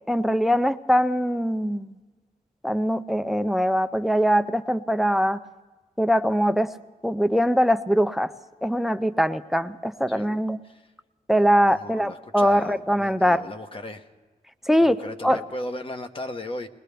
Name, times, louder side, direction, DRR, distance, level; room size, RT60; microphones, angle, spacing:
voice 1, 0.1-1.9 2.6-5.4 6.0-6.7 7.0-8.3 8.6-10.6 11.3-13.4 14.7-15.4, equal, ahead, 13 dB, 0.4 m, -22 dB
voice 2, 11.6-14.1 14.8-16.7, left 1 dB, 35° left, 6 dB, 1.0 m, -36 dB
21.5 x 20.0 x 3.4 m, 1.3 s
wide cardioid pair, 150°, 15 cm